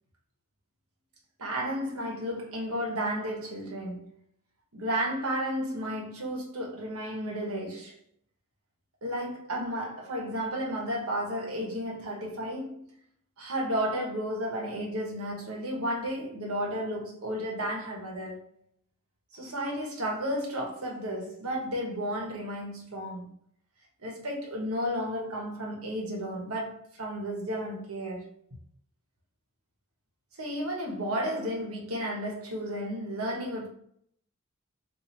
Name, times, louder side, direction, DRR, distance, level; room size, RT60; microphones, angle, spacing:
voice 1, 1.4-4.1 4.7-8.0 9.0-12.9 13.4-18.4 19.3-23.3 24.0-28.3 30.4-33.7, equal, 75° right, 1.1 m, -33 dB
2.8 x 2.7 x 4.0 m
head